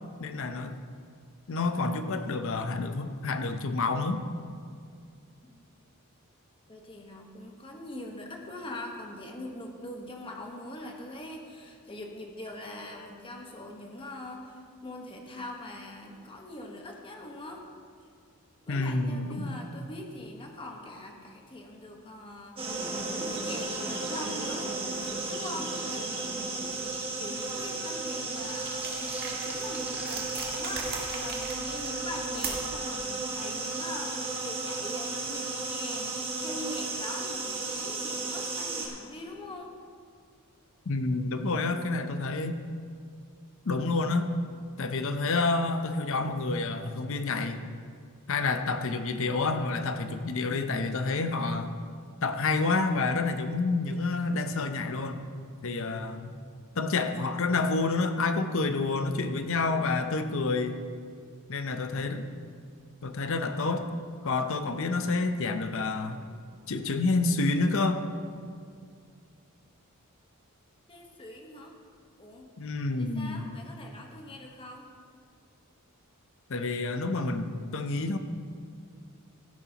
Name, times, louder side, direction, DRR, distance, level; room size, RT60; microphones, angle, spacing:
voice 1, 0.2-0.7 1.5-4.2 18.7-19.6 40.9-42.6 43.7-44.3 44.8-47.6 48.3-51.7 52.2-55.3 55.6-56.4 56.8-60.8 61.5-62.3 63.0-63.9 64.2-66.2 66.7-68.1 72.6-73.5 76.5-78.2, left 3 dB, 65° left, 8 dB, 0.7 m, -28 dB
voice 2, 6.7-17.7 18.7-22.6 23.2-24.7 25.2-26.5 27.2-39.8 70.9-71.7 72.2-72.5 73.0-74.9, left 1 dB, 25° left, 1 dB, 1.3 m, -42 dB
sound 1, 22.6-38.9, right 3 dB, 25° right, 1.7 m, -34 dB
sound 2, 27.9-30.2, right 2 dB, 10° right, 1.5 m, -44 dB
sound 3, 28.5-32.8, right 4 dB, 45° right, 1.8 m, -39 dB
16.0 x 11.0 x 3.0 m, 2.2 s
head